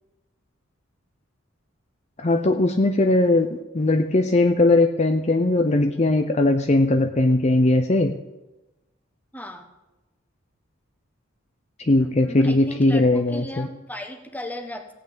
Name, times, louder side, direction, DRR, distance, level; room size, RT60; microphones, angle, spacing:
voice 1, 2.2-3.5 3.7-8.1 11.8-13.7, left 2 dB, 35° left, 7 dB, 0.6 m, -19 dB
voice 2, 9.3-9.7 12.0-14.9, left 1 dB, 10° left, 7 dB, 1.2 m, -36 dB
16.5 x 6.0 x 8.9 m, 1.0 s
head